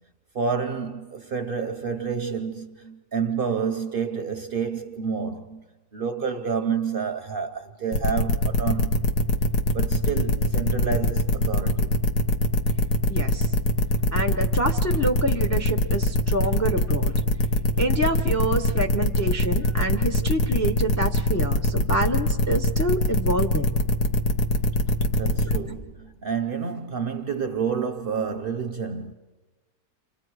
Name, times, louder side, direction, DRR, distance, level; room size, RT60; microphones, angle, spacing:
voice 1, 0.3-5.6 5.9-9.1 9.7-11.9 25.2-29.1, right 6 dB, 45° right, 0.8 m, -29 dB
sound 1, 7.9-25.6, left 1 dB, 85° left, 1.7 m, -22 dB
voice 2, 13.1-13.4 14.1-17.1 17.8-23.8, right 1 dB, 25° left, 0.4 m, -27 dB
29.5 x 26.0 x 4.7 m
omnidirectional pair, 1.7 m